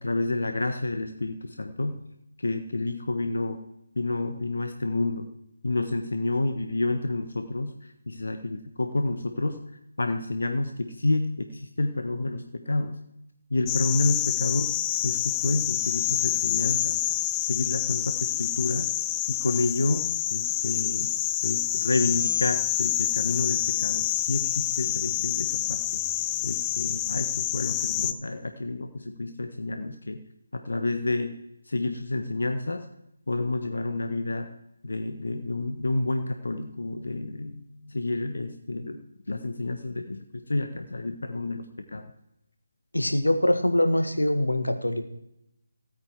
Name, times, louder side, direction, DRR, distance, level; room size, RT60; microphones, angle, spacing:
voice 1, 0.0-2.0 2.4-3.6 3.9-5.3 5.6-7.8 8.1-9.6 10.0-13.0 13.5-14.8 15.0-17.0 17.4-18.9 19.3-21.1 21.4-26.0 26.4-30.2 30.5-31.3 31.6-32.9 33.3-34.5 34.8-42.1, left 2 dB, 70° left, 8 dB, 1.2 m, -29 dB
sound 1, 13.7-28.1, left 13 dB, 20° left, 0.5 m, -27 dB
voice 2, 42.9-45.0, left 1 dB, 90° left, 7 dB, 1.7 m, -23 dB
16.0 x 9.4 x 4.7 m, 0.83 s
figure-of-eight pair, 150°, 0 cm